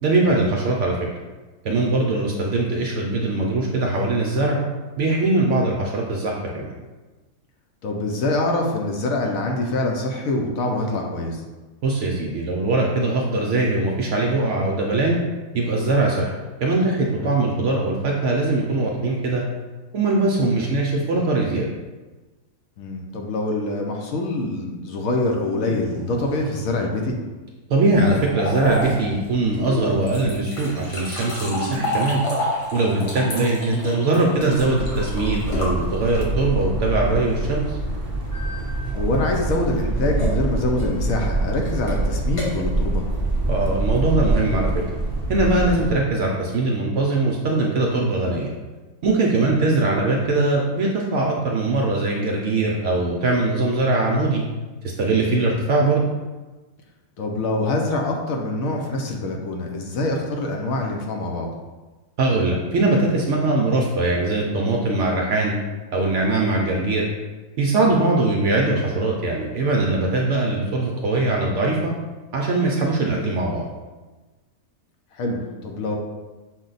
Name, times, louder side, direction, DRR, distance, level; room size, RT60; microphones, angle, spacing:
voice 1, 0.0-1.0 1.6-4.6 5.0-6.7 11.8-15.2 15.5-16.3 16.6-19.4 19.9-21.7 27.7-32.2 32.7-37.8 43.5-44.8 45.3-48.5 49.0-54.4 55.0-56.0 62.2-65.5 65.9-67.0 67.6-71.9 72.3-73.7, right 2 dB, 70° right, -1 dB, 0.7 m, -21 dB
voice 2, 7.8-11.4 17.2-17.3 22.8-27.2 32.9-33.1 38.9-43.0 57.2-61.5 67.9-68.0 75.1-76.0, left 2 dB, 70° left, 1 dB, 1.0 m, -25 dB
sound 1, 25.2-27.2 28.4-28.9 29.6-30.2 31.3-32.6 34.1-35.3 36.9-37.7, equal, 10° left, 1.0 m, -38 dB
sound 2, 27.9-36.5 38.3-44.0, left 1 dB, 85° left, 1.8 m, -31 dB
sound 3, 34.6-45.9, right 2 dB, 30° right, 0.3 m, -25 dB
6.3 x 2.2 x 3.9 m, 1.2 s
omnidirectional pair, 1.7 m